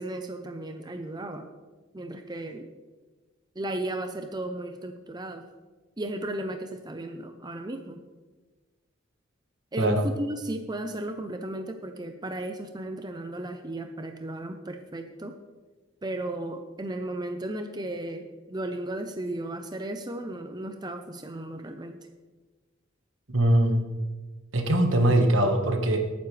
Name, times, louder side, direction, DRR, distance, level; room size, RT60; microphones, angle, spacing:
voice 1, 0.0-1.5 1.9-2.7 3.6-5.5 6.0-8.0 9.7-15.4 16.0-22.0, right 1 dB, 20° right, 6 dB, 0.6 m, -35 dB
voice 2, 23.3-23.8 24.5-26.0, right 1 dB, 75° right, 5 dB, 1.5 m, -22 dB
18.0 x 9.4 x 3.3 m, 1.3 s
head